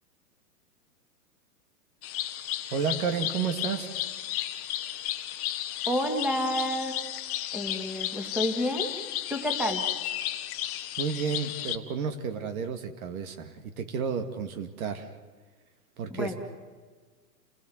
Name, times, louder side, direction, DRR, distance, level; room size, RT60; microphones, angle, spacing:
sound 1, 2.0-11.8, left 13 dB, 30° left, 1.2 m, -33 dB
voice 1, 2.7-3.9 11.0-15.1 16.0-16.3, right 6 dB, 60° right, 7 dB, 2.4 m, -31 dB
voice 2, 5.9-7.0 7.5-8.9 9.3-9.9 16.1-16.3, equal, ahead, 4 dB, 2.6 m, -29 dB
28.5 x 16.5 x 8.1 m, 1.5 s
hypercardioid pair, 135°, 49 cm